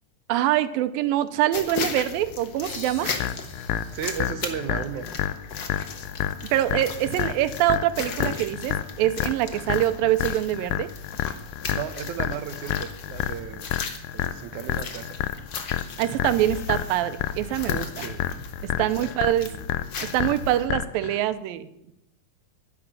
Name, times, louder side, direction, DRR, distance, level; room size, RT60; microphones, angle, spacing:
voice 1, 0.3-3.1 6.5-10.9 16.0-18.1 18.6-19.5 20.1-21.9, right 13 dB, 90° right, 12 dB, 2.5 m, -24 dB
sound 1, 1.5-20.7, left 5 dB, 70° left, 1.0 m, -37 dB
sound 2, 2.6-6.0, left 2 dB, 30° left, 3.0 m, -47 dB
sound 3, 3.2-21.2, left 12 dB, 85° left, 2.4 m, -30 dB
voice 2, 3.9-5.1 11.7-13.7 14.1-15.2 18.0-18.2 18.8-19.1 19.4-19.7, right 9 dB, 75° right, 11 dB, 1.9 m, -35 dB
11.5 x 10.0 x 7.4 m, 0.83 s
omnidirectional pair, 4.1 m